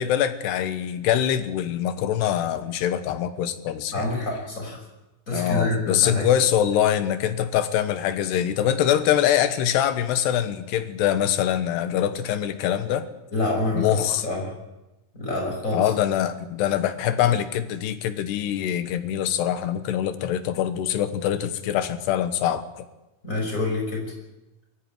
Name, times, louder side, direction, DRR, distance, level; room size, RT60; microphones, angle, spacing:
voice 1, 0.0-4.1 5.3-13.1 13.7-14.2 15.7-22.8, left 10 dB, 90° left, 10 dB, 3.3 m, -24 dB
voice 2, 3.9-4.8 5.3-6.3 13.3-14.5 15.1-15.9 23.2-24.0, left 2 dB, 20° left, -1 dB, 6.3 m, -27 dB
22.5 x 14.0 x 9.2 m, 1.0 s
omnidirectional pair, 4.7 m